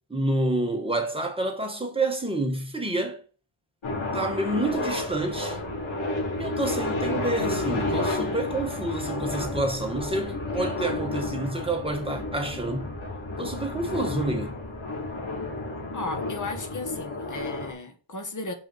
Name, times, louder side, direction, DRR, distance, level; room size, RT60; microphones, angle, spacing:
voice 1, 0.1-3.2 4.1-5.6 6.4-12.9 13.4-14.6, right 2 dB, 10° right, 1.5 m, -28 dB
sound 1, 3.8-17.7, left 2 dB, 70° left, 4.0 m, -31 dB
voice 2, 15.9-18.5, left 3 dB, 40° left, 1.4 m, -35 dB
6.3 x 5.5 x 4.6 m
wide cardioid pair, 140°, 49 cm